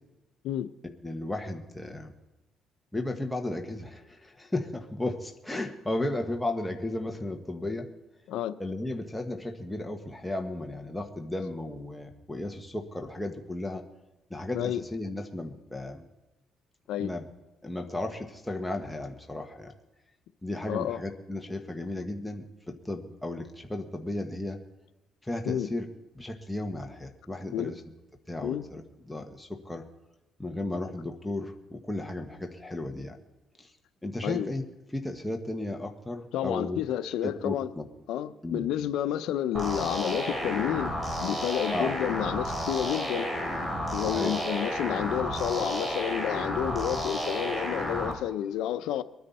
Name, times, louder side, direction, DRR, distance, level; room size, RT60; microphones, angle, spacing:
voice 1, 0.8-2.1 2.9-7.9 8.6-13.8 14.3-16.0 17.0-17.3 17.6-19.7 20.4-24.6 25.2-25.8 26.2-27.8 28.3-28.8 29.1-29.8 30.4-33.2 33.6-33.7 34.0-34.6 34.9-36.8 37.2-37.8 38.4-38.7 41.7-41.9 44.0-44.3, left 1 dB, 5° left, 1.4 m, -34 dB
voice 2, 20.7-21.0 25.5-25.7 27.5-27.7 28.4-28.7 34.2-34.5 36.3-37.7 38.1-40.9 41.2-43.3 43.9-49.0, left 11 dB, 85° left, 0.6 m, -30 dB
sound 1, 39.5-48.1, equal, 20° right, 3.1 m, -31 dB
23.0 x 9.7 x 4.2 m
cardioid pair, 105°, 0 cm